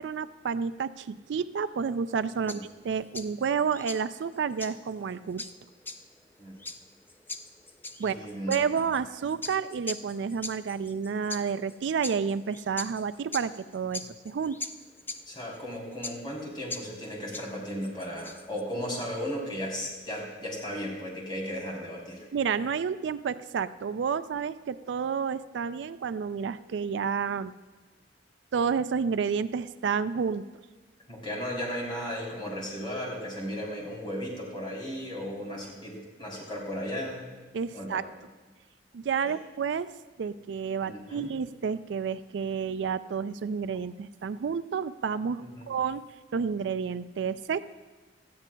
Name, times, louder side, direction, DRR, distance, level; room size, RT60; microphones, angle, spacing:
voice 1, 0.0-5.4 8.0-8.2 8.5-14.6 22.3-27.5 28.5-30.5 37.5-38.0 38.9-39.9 40.2-46.0 46.3-47.6, right 6 dB, 70° right, 14 dB, 0.4 m, -30 dB
sound 1, 2.1-18.6, left 3 dB, 10° left, 0.4 m, -42 dB
voice 2, 8.0-8.7 15.3-22.2 31.1-37.3 37.7-38.0 39.2-39.3 40.8-41.3 45.4-45.7, equal, 25° left, -3 dB, 3.5 m, -35 dB
18.0 x 13.5 x 2.3 m, 1.3 s
head